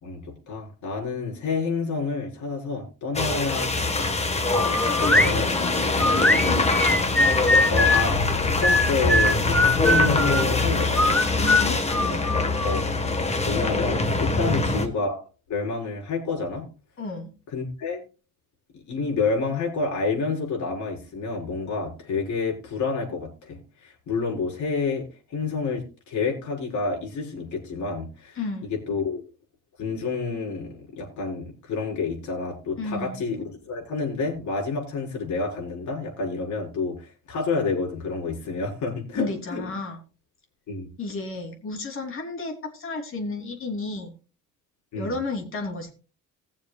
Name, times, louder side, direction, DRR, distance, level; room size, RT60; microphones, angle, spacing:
voice 1, 0.0-4.1 5.0-5.5 7.7-11.2 12.6-12.9 13.5-15.2 15.5-16.7 17.5-18.0 18.7-29.2 29.8-39.6 40.7-40.9 44.9-45.1, left 4 dB, 70° left, -1 dB, 4.8 m, -29 dB
sound 1, 3.2-14.9, left 3 dB, 20° left, 1.4 m, -24 dB
sound 2, 4.5-5.3 6.0-8.1 8.6-10.4 10.9-12.8, left 2 dB, 5° left, 0.6 m, -21 dB
voice 2, 4.8-5.9 11.4-12.2 14.4-14.7 17.0-17.3 28.4-28.7 32.8-33.2 39.1-40.0 41.0-44.1 44.9-45.9, left 3 dB, 45° left, 2 dB, 3.2 m, -32 dB
20.0 x 7.1 x 2.4 m, 0.34 s
cardioid pair, 150°, 30 cm